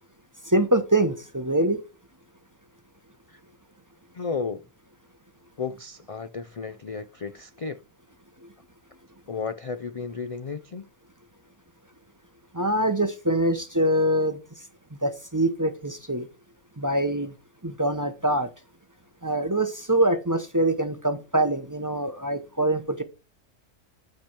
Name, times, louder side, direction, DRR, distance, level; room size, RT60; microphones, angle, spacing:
voice 1, 0.5-1.8 12.5-14.4 15.0-16.3 16.8-17.3 17.6-18.5 19.2-23.0, right 1 dB, 20° right, 0.7 m, -24 dB
voice 2, 4.1-4.6 5.6-7.8 9.3-10.9, left 5 dB, 55° left, 0.3 m, -33 dB
10.5 x 5.9 x 4.4 m
omnidirectional pair, 1.4 m